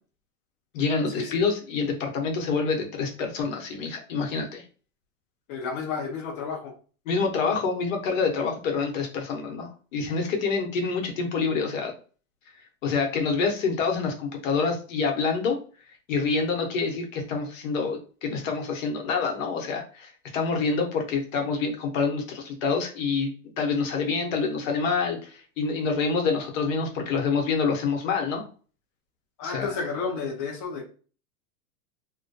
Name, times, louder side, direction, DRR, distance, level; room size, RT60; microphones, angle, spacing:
voice 1, 0.7-4.6 7.1-11.9 12.8-15.6 16.1-23.3 23.6-28.5 29.4-29.8, left 4 dB, 60° left, 2 dB, 0.9 m, -27 dB
voice 2, 5.5-6.7 29.4-30.9, left 5 dB, 30° left, 0 dB, 0.4 m, -31 dB
2.2 x 2.2 x 2.6 m, 0.39 s
hypercardioid pair, 125°, 44 cm